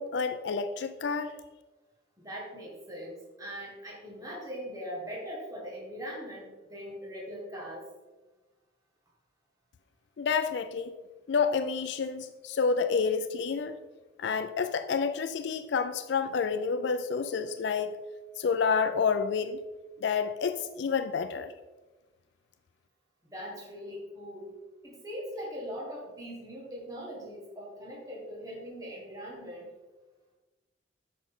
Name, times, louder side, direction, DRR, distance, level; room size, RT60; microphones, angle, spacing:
voice 1, 0.0-1.3 10.2-10.9 11.3-13.8 14.2-17.9 18.4-19.6 20.0-21.5, left 5 dB, 70° left, 9 dB, 0.4 m, -29 dB
voice 2, 2.2-7.9 23.3-24.5 24.8-29.7, equal, 20° right, -3 dB, 1.6 m, -41 dB
8.4 x 6.2 x 3.6 m, 1.2 s
head